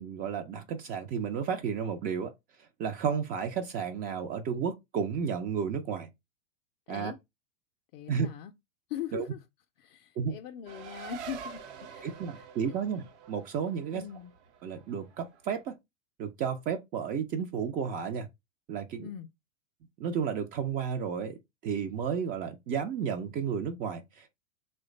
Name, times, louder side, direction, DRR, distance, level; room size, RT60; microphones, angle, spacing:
voice 1, 0.0-2.3 2.8-6.1 6.9-7.1 8.1-8.3 9.1-9.3 10.2-10.3 12.0-14.0 14.6-15.8 16.2-18.3 18.7-19.1 20.0-21.4 21.6-24.3, right 7 dB, 25° right, 0.4 m, -32 dB
voice 2, 6.9-7.2 7.9-8.5 8.9-9.4 9.8-12.8 13.9-14.3 19.0-19.3, left 10 dB, 45° left, 0.5 m, -41 dB
Race car auto racing, 10.7-15.6, right 6 dB, 60° right, 0.8 m, -46 dB
3.0 x 2.2 x 3.7 m
hypercardioid pair, 100°, 38 cm